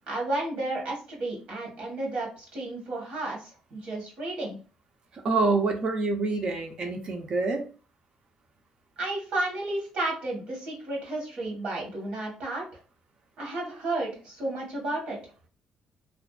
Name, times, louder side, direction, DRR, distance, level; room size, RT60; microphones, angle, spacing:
voice 1, 0.1-4.6 9.0-12.6 13.4-15.2, right 2 dB, 65° right, -2 dB, 1.1 m, -32 dB
voice 2, 5.2-7.6, right 3 dB, 45° right, 5 dB, 0.5 m, -26 dB
2.5 x 2.2 x 2.3 m, 0.36 s
cardioid pair, 120°, 2 cm